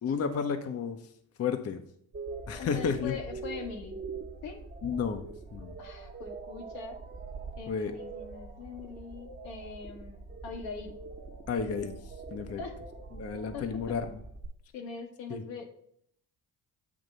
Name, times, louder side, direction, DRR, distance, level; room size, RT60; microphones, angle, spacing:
voice 1, 0.0-1.0 1.4-1.8 2.5-3.2 4.8-5.2 5.5-5.7 7.7-8.0 11.5-12.0 12.3-12.6 13.1-14.2 15.3-15.4, left 6 dB, 35° left, 7 dB, 0.7 m, -32 dB
sound 1, 2.1-14.5, right 4 dB, 25° right, 1.0 m, -43 dB
voice 2, 2.6-4.0 4.4-4.6 5.8-7.0 7.6-11.0 12.6-12.7 13.5-13.6 14.7-15.7, left 5 dB, 70° left, 2 dB, 1.3 m, -42 dB
8.6 x 2.9 x 5.3 m, 0.68 s
hypercardioid pair, 50°, 46 cm